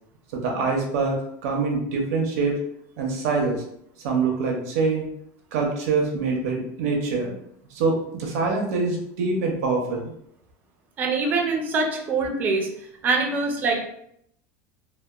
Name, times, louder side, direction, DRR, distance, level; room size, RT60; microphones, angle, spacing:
voice 1, 0.3-2.5 3.0-3.6 4.0-5.1 5.5-7.3 7.7-10.1, right 4 dB, 90° right, 0 dB, 0.5 m, -25 dB
voice 2, 11.0-12.7 13.0-13.9, right 3 dB, 25° right, 1 dB, 0.4 m, -24 dB
2.8 x 2.0 x 2.3 m, 0.73 s
cardioid pair, 175°, 8 cm